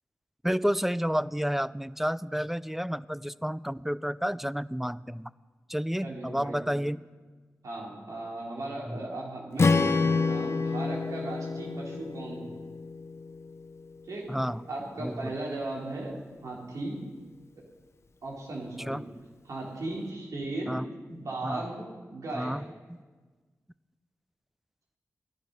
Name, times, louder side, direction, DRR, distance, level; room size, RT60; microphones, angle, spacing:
voice 1, 0.4-5.3 5.7-7.0 8.9-9.0 14.3-14.7 15.0-15.3 18.9-19.0 20.7-21.7 22.3-22.7, equal, 5° right, 18 dB, 0.4 m, -31 dB
voice 2, 6.0-6.6 7.6-12.6 14.1-14.3 14.7-16.2 16.4-17.0 18.2-19.0 19.5-20.8 21.1-22.6, right 2 dB, 75° right, -2 dB, 3.5 m, -37 dB
Strum, 9.6-13.8, left 4 dB, 50° left, 0.8 m, -28 dB
15.0 x 10.5 x 5.4 m, 1.4 s
cardioid pair, 45°, 6 cm